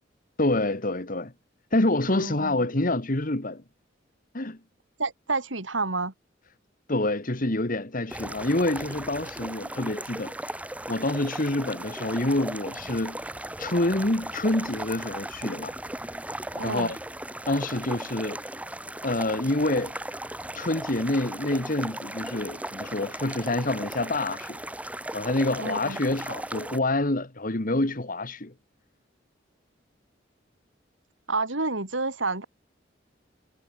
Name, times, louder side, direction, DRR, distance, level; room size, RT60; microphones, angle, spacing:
voice 1, 0.4-1.3 1.7-3.6 4.3-4.6 6.9-10.6 10.9-13.2 13.6-15.7 16.6-17.0 17.5-18.4 19.0-20.0 20.5-24.6 25.1-28.5, left 2 dB, 45° left, 2.0 m, -27 dB
voice 2, 2.1-2.6 5.0-6.1 16.5-17.0 25.6-26.0 31.3-32.4, right 3 dB, 90° right, 3.9 m, -29 dB
sound 1, 8.1-26.8, right 1 dB, 5° right, 4.3 m, -37 dB
head